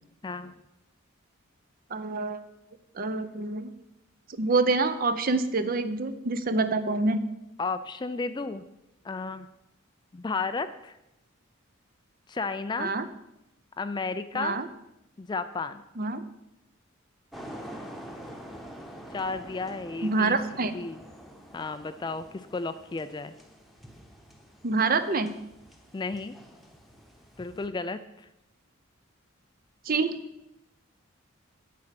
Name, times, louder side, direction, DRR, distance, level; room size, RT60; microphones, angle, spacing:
voice 1, 0.2-0.6 7.6-8.6 9.0-9.5 10.1-11.0 12.3-12.9 13.8-14.6 15.2-15.8 19.1-21.0 21.5-23.3 25.9-26.3 27.4-28.0, left 4 dB, 20° left, 11 dB, 0.3 m, -33 dB
voice 2, 1.9-2.4 2.9-3.7 4.4-7.2 12.8-13.1 14.3-14.7 16.0-16.2 20.0-20.7 24.6-25.3 29.8-30.2, right 3 dB, 40° right, 11 dB, 0.6 m, -26 dB
sound 1, 17.3-27.7, equal, ahead, 1.0 m, -46 dB
8.5 x 7.7 x 5.8 m, 0.89 s
head